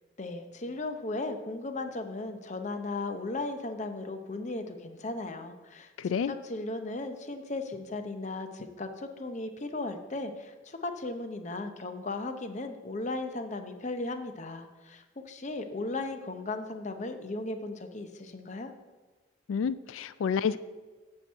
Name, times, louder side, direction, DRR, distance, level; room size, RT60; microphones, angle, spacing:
voice 1, 0.2-18.7, left 2 dB, 35° left, 7 dB, 0.7 m, -36 dB
voice 2, 6.0-6.3 19.5-20.6, left 6 dB, 85° left, 15 dB, 0.3 m, -29 dB
8.8 x 4.5 x 7.5 m, 1.3 s
head